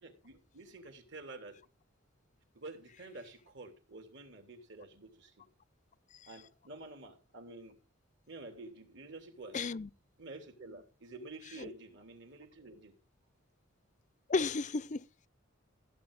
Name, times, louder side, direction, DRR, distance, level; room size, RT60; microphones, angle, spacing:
voice 1, 0.0-1.6 2.5-5.3 6.3-7.8 8.3-9.7 10.2-12.9, right 2 dB, 60° right, 3.3 m, -49 dB
voice 2, 9.5-9.9 11.6-11.7 14.3-15.3, left 4 dB, 35° left, 0.5 m, -33 dB
15.5 x 8.6 x 4.9 m
head